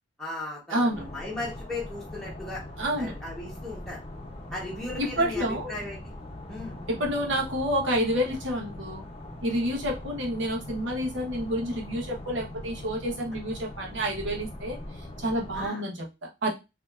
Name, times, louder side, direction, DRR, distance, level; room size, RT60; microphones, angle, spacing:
voice 1, 0.2-2.6 3.0-4.0 4.5-6.1 6.5-6.8 15.5-15.8, left 2 dB, ahead, -5 dB, 1.1 m, -37 dB
voice 2, 0.7-1.0 2.8-3.1 5.0-5.7 6.9-9.0 9.4-16.5, equal, 85° right, -1 dB, 1.1 m, -29 dB
sound 1, 0.9-15.7, left 1 dB, 30° left, 0.7 m, -41 dB
4.3 x 2.9 x 2.4 m, 0.26 s
head